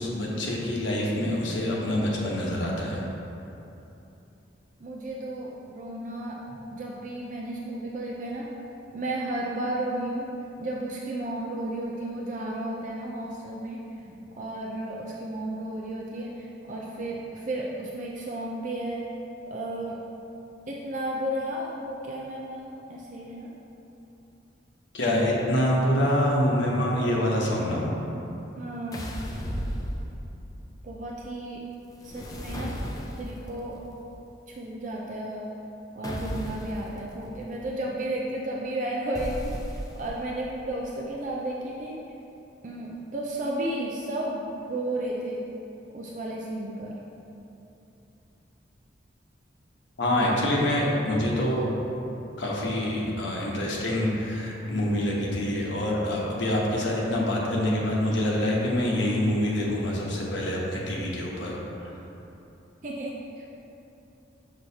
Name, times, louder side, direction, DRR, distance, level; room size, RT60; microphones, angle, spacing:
voice 1, 0.0-3.0 14.0-14.1 24.9-27.9 50.0-51.7 52.4-61.6, left 1 dB, 80° left, -3 dB, 1.1 m, -26 dB
voice 2, 4.8-6.4 6.7-8.5 8.9-10.3 10.6-13.8 14.4-19.0 19.5-20.0 20.7-23.5 28.6-29.1 30.8-31.6 32.0-32.7 33.1-33.8 34.6-35.5 36.0-39.6 40.0-41.9 42.6-45.4 45.9-47.0 62.8-63.5, right 1 dB, 40° right, -3 dB, 0.5 m, -33 dB
sound 1, 28.9-30.5 32.0-33.5 36.0-36.9 39.2-40.3, equal, 20° left, 0.4 m, -34 dB
6.3 x 6.0 x 2.8 m, 2.9 s
head